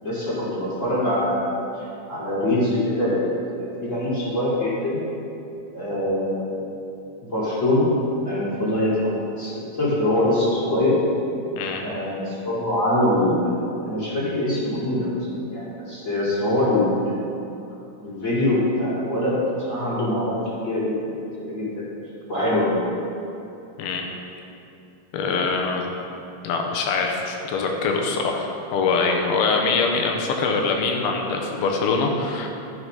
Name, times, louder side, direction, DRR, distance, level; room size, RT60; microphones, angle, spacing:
voice 1, 0.0-1.5 1.8-3.3 3.5-5.0 5.7-6.5 7.3-7.9 8.2-11.0 11.8-15.1 15.5-17.4 18.0-20.3 20.6-21.1 21.5-21.9 22.3-22.8, left 1 dB, 25° left, -9 dB, 2.3 m, -23 dB
voice 2, 25.1-25.9 26.4-32.5, left 4 dB, 80° left, 2 dB, 2.9 m, -23 dB
13.5 x 4.8 x 5.2 m, 2.8 s
omnidirectional pair, 4.4 m